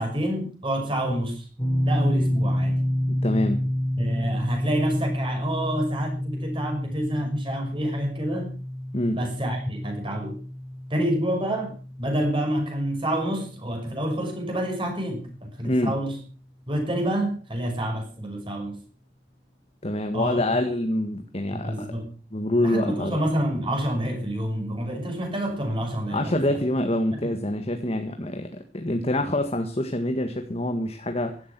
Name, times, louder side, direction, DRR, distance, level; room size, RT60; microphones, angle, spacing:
voice 1, 0.0-1.5 1.9-2.8 4.0-8.5 9.1-10.4 10.9-16.2 16.7-18.8 20.1-20.5 21.5-22.1 22.6-26.6 27.1-27.3, right 1 dB, 25° right, 3 dB, 6.3 m, -28 dB
sound 1, 1.6-14.5, equal, 15° left, 3.8 m, -29 dB
voice 2, 3.1-3.6 8.9-9.2 15.6-15.9 19.8-21.9 22.3-23.2 26.1-31.4, left 1 dB, 35° left, 6 dB, 1.8 m, -26 dB
16.0 x 12.5 x 6.1 m, 0.38 s
head